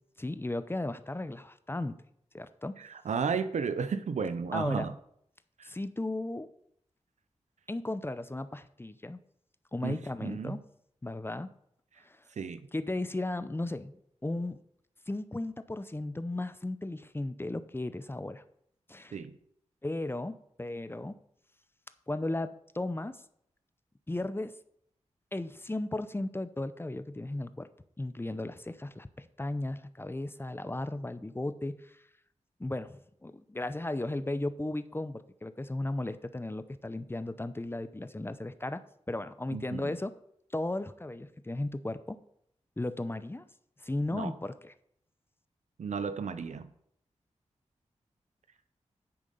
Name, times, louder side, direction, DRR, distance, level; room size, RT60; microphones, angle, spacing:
voice 1, 0.2-1.9 2.3-2.7 4.5-4.9 5.6-6.5 7.7-9.2 9.7-10.6 11.0-11.5 12.0-12.2 12.7-13.9 14.2-14.6 15.1-18.4 18.9-19.2 19.8-21.2 22.1-23.2 24.1-24.6 25.3-27.7 28.0-32.0 32.6-40.1 40.5-42.2 42.8-43.4 43.8-44.7, left 2 dB, 20° left, 13 dB, 0.6 m, -35 dB
voice 2, 2.8-4.9 5.6-5.7 9.8-10.6 12.4-12.6 19.1-19.4 39.5-39.9 44.1-44.3 45.8-46.7, right 6 dB, 80° right, 12 dB, 0.7 m, -33 dB
8.7 x 6.3 x 5.4 m, 0.72 s
cardioid pair, 50°, 12 cm